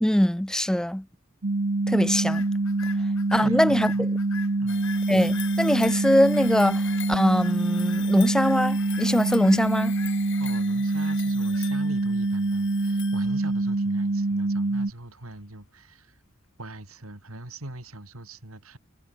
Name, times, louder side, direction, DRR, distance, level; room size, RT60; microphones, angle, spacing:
voice 1, 0.0-1.0 1.9-2.5 3.3-4.1 5.1-9.9, equal, 5° left, 0.4 m, -22 dB
sound 1, 1.4-14.9, right 2 dB, 55° right, 0.9 m, -25 dB
sound 2, 2.1-16.4, left 7 dB, 80° left, 4.8 m, -47 dB
voice 2, 3.4-4.1 4.6-4.9 10.4-16.2 16.6-18.8, right 1 dB, 85° right, 4.2 m, -42 dB
sound 3, 4.7-13.7, left 11 dB, 60° left, 6.1 m, -42 dB
head